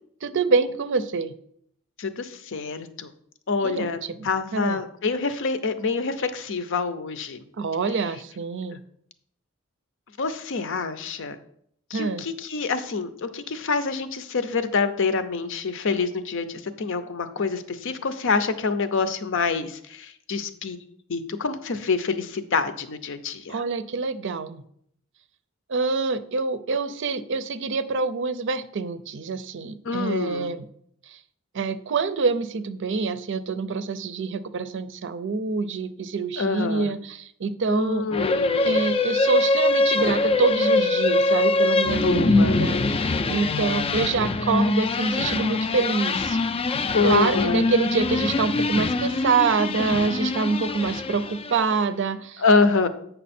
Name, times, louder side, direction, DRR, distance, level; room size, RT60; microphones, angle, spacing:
voice 1, 0.2-1.3 3.6-3.9 4.2-4.8 7.6-8.8 11.9-12.2 23.5-24.6 25.7-30.7 31.5-38.0 38.6-46.4 47.0-52.4, right 4 dB, 60° right, 13 dB, 0.5 m, -26 dB
voice 2, 2.0-3.1 3.5-7.4 10.2-11.4 11.9-20.8 21.1-23.6 29.8-30.5 36.4-36.9 37.7-38.8 42.0-42.6 46.9-47.7 52.4-52.9, left 4 dB, 60° left, 11 dB, 0.6 m, -26 dB
sound 1, 38.1-51.7, left 3 dB, 25° left, 0.3 m, -23 dB
8.3 x 5.5 x 4.3 m, 0.68 s
head